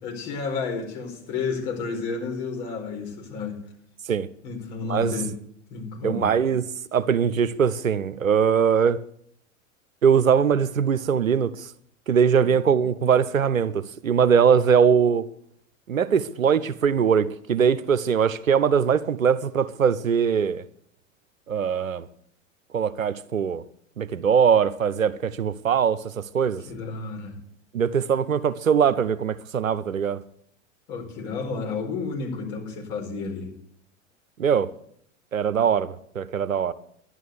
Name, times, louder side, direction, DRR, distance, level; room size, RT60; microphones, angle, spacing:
voice 1, 0.0-3.6 4.4-5.3 5.7-6.3 12.4-12.6 26.7-27.3 30.9-33.5, left 4 dB, 55° left, 4.8 m, -31 dB
voice 2, 6.0-6.6 6.9-9.0 10.0-11.7 12.1-15.2 15.9-20.6 21.5-22.1 22.7-23.6 24.0-26.6 27.7-30.2 34.4-34.7 35.3-36.7, right 7 dB, 85° right, 0.9 m, -21 dB
11.5 x 11.0 x 6.7 m
figure-of-eight pair, 95°, 39 cm